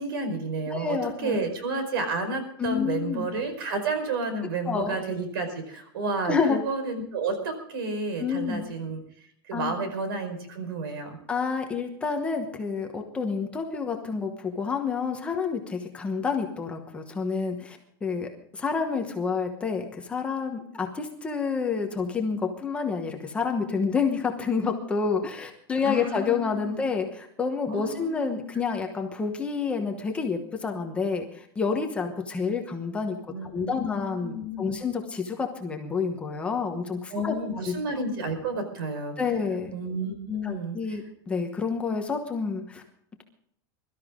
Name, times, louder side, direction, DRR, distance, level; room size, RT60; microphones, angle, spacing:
voice 1, 0.0-9.0 9.5-11.2 25.8-26.8 27.7-28.4 33.3-34.8 37.1-39.1 39.7-41.0, right 2 dB, 75° right, 8 dB, 4.8 m, -31 dB
voice 2, 0.7-1.4 2.6-3.3 4.7-5.0 6.2-6.6 8.2-8.7 9.5-9.7 11.3-33.2 33.5-37.3 37.7-37.8 39.2-39.7 40.4-42.8, left 5 dB, 10° left, 3 dB, 1.1 m, -29 dB
23.0 x 13.0 x 3.7 m, 0.66 s
supercardioid pair, 180°, 12 cm